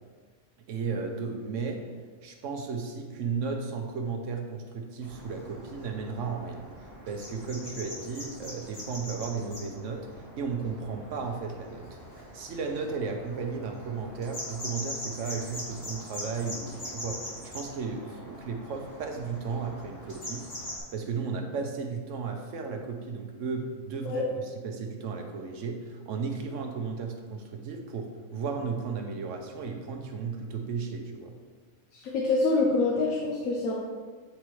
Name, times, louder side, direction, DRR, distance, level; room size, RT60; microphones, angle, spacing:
voice 1, 0.7-1.8 2.2-6.7 7.1-11.9 12.3-20.5 20.9-31.3, right 5 dB, 70° right, 4 dB, 1.0 m, -34 dB
sound 1, 5.0-20.8, left 1 dB, 45° left, 2.3 m, -42 dB
voice 2, 31.9-33.7, left 3 dB, 80° left, -3 dB, 1.2 m, -26 dB
8.2 x 4.3 x 3.1 m, 1.5 s
omnidirectional pair, 1.4 m